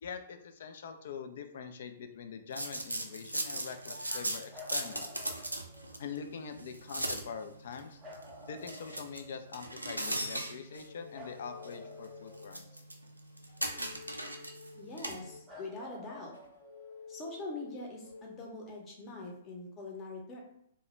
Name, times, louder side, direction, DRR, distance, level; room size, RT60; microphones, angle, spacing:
voice 1, 0.0-5.0 6.0-8.0 8.5-12.7, left 6 dB, 55° left, 7 dB, 0.3 m, -44 dB
sound 1, 2.1-6.1 10.6-13.0 13.5-19.1, left 4 dB, 75° left, 0.8 m, -53 dB
sound 2, 2.5-15.4, right 1 dB, 90° right, 0.3 m, -40 dB
sound 3, 4.5-6.0 8.0-9.7 11.1-13.1 15.5-17.2 19.3-19.4, left 1 dB, 15° right, 0.7 m, -52 dB
voice 2, 14.7-16.3 17.1-20.4, left 2 dB, 25° left, -1 dB, 0.7 m, -43 dB
2.2 x 2.1 x 3.0 m, 0.71 s
figure-of-eight pair, 115°, 0 cm